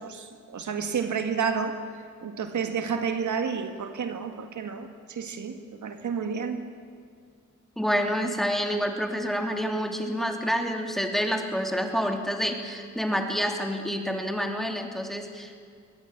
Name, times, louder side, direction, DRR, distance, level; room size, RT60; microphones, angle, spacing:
voice 1, 0.0-1.8 2.2-6.7, right 6 dB, 70° right, 7 dB, 2.0 m, -30 dB
voice 2, 7.8-15.6, equal, ahead, 3 dB, 3.0 m, -28 dB
22.5 x 19.0 x 8.9 m, 2.3 s
cardioid pair, 95°, 30 cm